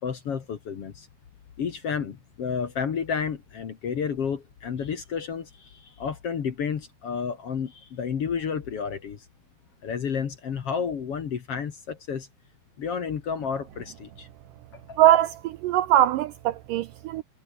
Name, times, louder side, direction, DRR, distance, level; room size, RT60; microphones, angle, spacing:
voice 1, 0.0-1.1 1.6-9.3 9.8-12.3 12.8-14.3 14.7-15.0, left 6 dB, 50° left, 2.1 m, -31 dB
voice 2, 15.0-17.2, right 13 dB, 75° right, 2.0 m, -21 dB
omnidirectional pair, 4.4 m